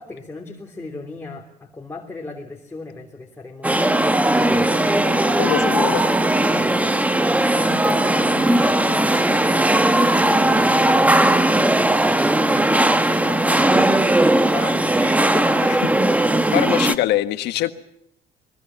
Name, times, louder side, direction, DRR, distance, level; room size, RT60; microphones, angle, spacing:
voice 1, 0.0-4.7 5.3-9.8 10.1-15.8, left 3 dB, 15° left, 0 dB, 3.1 m, -35 dB
sound 1, 3.6-17.0, right 1 dB, 10° right, 1.3 m, -18 dB
voice 2, 5.4-6.0 16.5-17.7, left 14 dB, 85° left, 10 dB, 1.6 m, -22 dB
22.5 x 22.5 x 7.3 m, 0.76 s
cardioid pair, 110°, 17 cm